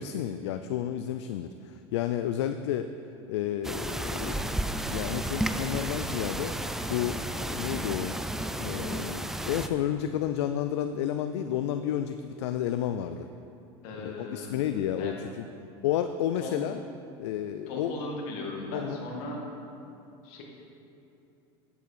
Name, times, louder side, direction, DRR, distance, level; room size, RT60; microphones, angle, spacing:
voice 1, 0.0-2.9 3.3-4.5 4.9-6.6 6.9-8.2 8.6-13.3 14.0-15.3 15.8-16.8 17.2-17.9 18.7-19.0, left 10 dB, 85° left, 9 dB, 0.4 m, -31 dB
sound 1, 3.6-9.7, right 1 dB, 5° right, 0.3 m, -32 dB
voice 2, 13.8-14.6 15.0-15.2 16.4-16.6 17.7-19.4 20.2-20.4, left 2 dB, 65° left, -1 dB, 1.9 m, -37 dB
9.1 x 8.2 x 4.2 m, 2.7 s
supercardioid pair, 115°, 14 cm